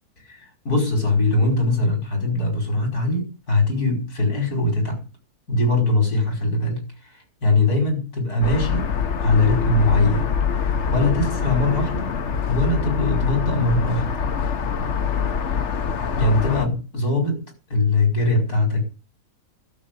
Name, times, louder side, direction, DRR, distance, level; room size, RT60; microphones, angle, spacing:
voice 1, 0.2-5.0 5.5-8.9 9.2-10.3 10.9-12.1 12.5-14.1 16.2-17.4 17.7-18.8, left 2 dB, 85° left, 5.6 m, -21 dB
sound 1, 8.4-16.7, left 6 dB, 55° left, 1.3 m, -24 dB
12.0 x 7.7 x 9.2 m
omnidirectional pair, 1.6 m